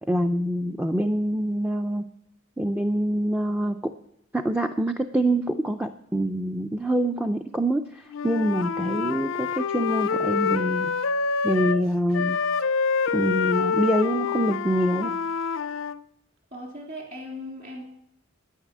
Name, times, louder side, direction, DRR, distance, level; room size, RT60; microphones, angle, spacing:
voice 1, 0.0-2.1 2.6-3.9 4.3-10.9 11.4-12.4 13.1-15.2, right 1 dB, 5° right, 6 dB, 0.4 m, -25 dB
Wind instrument woodwind instrument, 8.1-11.8 12.1-16.0, left 5 dB, 65° left, 0.5 m, -26 dB
voice 2, 16.5-17.8, left 1 dB, 40° right, 1 dB, 3.4 m, -38 dB
10.0 x 9.7 x 7.3 m, 0.80 s
head